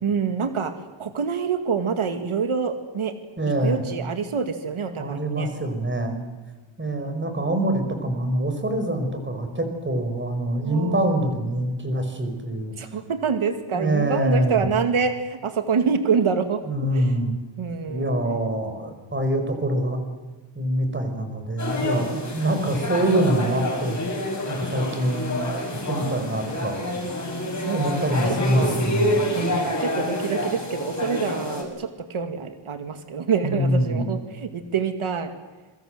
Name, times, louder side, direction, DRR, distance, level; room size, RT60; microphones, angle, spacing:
voice 1, 0.0-0.7 1.0-3.1 3.6-5.5 7.0-7.2 10.6-11.1 12.8-16.6 16.9-17.0 17.6-18.1 24.7-25.0 25.9-26.2 27.6-28.1 28.5-28.8 29.4-35.3, right 6 dB, 85° right, 7 dB, 2.2 m, -26 dB
voice 2, 3.4-3.8 4.9-6.2 6.8-12.7 13.7-14.6 16.6-17.3 17.9-20.0 20.5-24.0 24.5-25.4 25.9-26.9 27.7-29.2 33.4-34.1, right 1 dB, 25° right, 6 dB, 5.0 m, -25 dB
sound 1, 21.6-31.6, left 1 dB, 35° left, 7.3 m, -28 dB
27.5 x 24.0 x 7.8 m, 1.2 s
wide cardioid pair, 175°, 48 cm